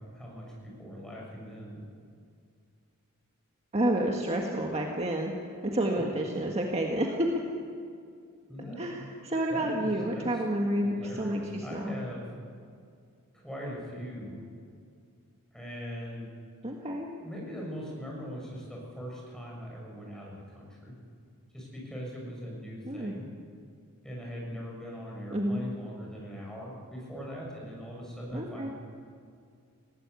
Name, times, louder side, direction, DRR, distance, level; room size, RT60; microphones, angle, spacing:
voice 1, 0.0-1.8 5.9-6.0 8.5-9.0 9.5-10.3 10.8-12.3 13.4-14.4 15.5-16.3 17.2-20.9 21.5-23.3 24.0-28.7, equal, 5° left, -3 dB, 6.9 m, -41 dB
voice 2, 3.7-5.3 5.6-7.4 8.8-12.0 16.6-17.1 22.9-23.1 25.3-25.6 28.3-28.7, right 1 dB, 30° right, 0 dB, 1.6 m, -29 dB
20.0 x 18.0 x 8.4 m, 2.3 s
head